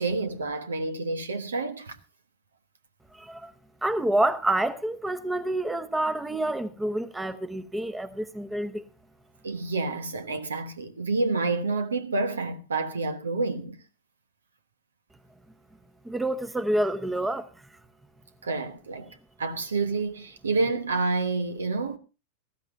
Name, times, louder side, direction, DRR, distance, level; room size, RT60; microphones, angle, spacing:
voice 1, 0.0-2.0 9.4-13.8 18.4-19.1 19.4-22.0, right 3 dB, 80° right, 1.3 m, -28 dB
voice 2, 3.1-3.5 3.8-8.8 16.0-17.5, right 1 dB, 10° right, 0.9 m, -28 dB
19.0 x 14.5 x 2.7 m
figure-of-eight pair, 95°, 0 cm